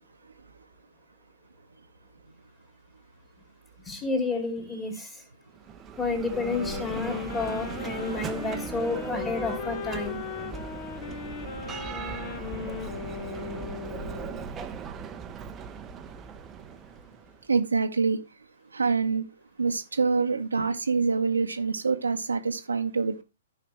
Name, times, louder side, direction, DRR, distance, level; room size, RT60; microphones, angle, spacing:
voice 1, 3.9-5.1 6.0-10.2, left 3 dB, 15° left, 2.5 m, -30 dB
Bell, 5.5-17.4, right 6 dB, 20° right, 0.7 m, -38 dB
sound 1, 6.3-14.5, left 7 dB, 40° left, 1.1 m, -37 dB
voice 2, 17.5-18.2 18.7-19.2 19.6-23.2, right 4 dB, 75° right, 0.9 m, -25 dB
14.0 x 5.0 x 3.0 m
figure-of-eight pair, 115°, 0 cm